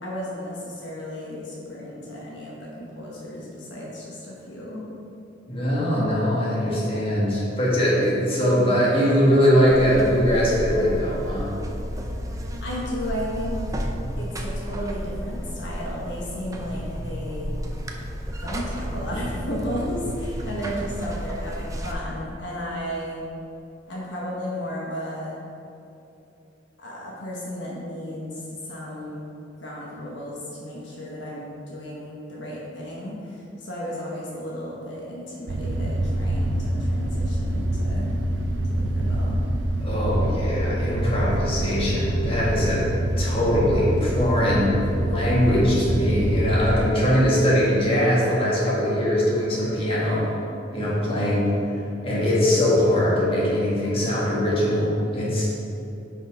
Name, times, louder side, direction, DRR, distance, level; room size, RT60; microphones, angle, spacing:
voice 1, 0.0-4.8 12.6-13.8 14.2-17.6 18.4-23.2 23.9-25.4 26.8-29.3 29.6-38.1 38.7-39.4 50.8-51.3, equal, 70° left, -4 dB, 1.2 m, -34 dB
voice 2, 5.5-11.5 39.8-42.9 43.2-50.3 50.7-51.5 52.0-55.5, equal, 30° left, -6 dB, 1.7 m, -21 dB
Buzz, 9.7-21.9, equal, 20° right, 0.5 m, -32 dB
sound 1, 35.5-46.8, right 1 dB, 85° right, 0.6 m, -25 dB
6.1 x 5.5 x 4.9 m, 2.8 s
head